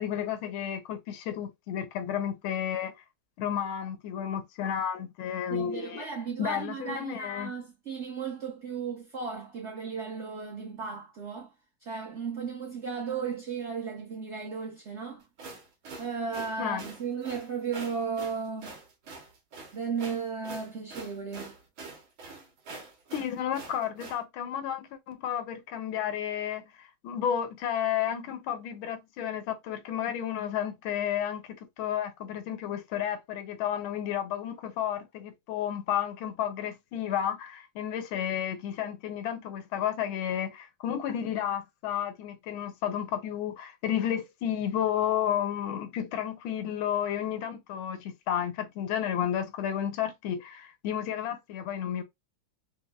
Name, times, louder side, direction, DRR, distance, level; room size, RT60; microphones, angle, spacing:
voice 1, 0.0-2.9 3.4-6.1 6.4-7.5 16.6-16.8 23.1-52.0, left 9 dB, 90° left, 1.5 m, -32 dB
voice 2, 5.5-11.5 11.8-15.2 16.0-18.8 19.7-21.5, right 5 dB, 60° right, 0.7 m, -35 dB
sound 1, 15.2-24.2, right 3 dB, 85° right, 1.7 m, -45 dB
5.2 x 2.0 x 2.2 m
omnidirectional pair, 2.2 m